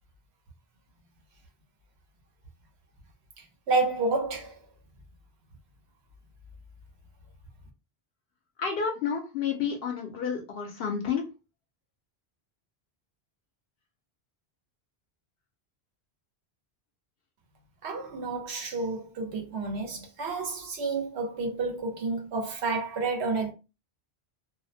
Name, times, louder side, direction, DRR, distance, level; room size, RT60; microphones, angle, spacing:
voice 1, 3.7-4.6 17.8-23.5, right 3 dB, 90° right, 1.0 m, -30 dB
voice 2, 8.6-11.2, left 6 dB, 70° left, 0.8 m, -30 dB
2.4 x 2.0 x 2.6 m
omnidirectional pair, 1.1 m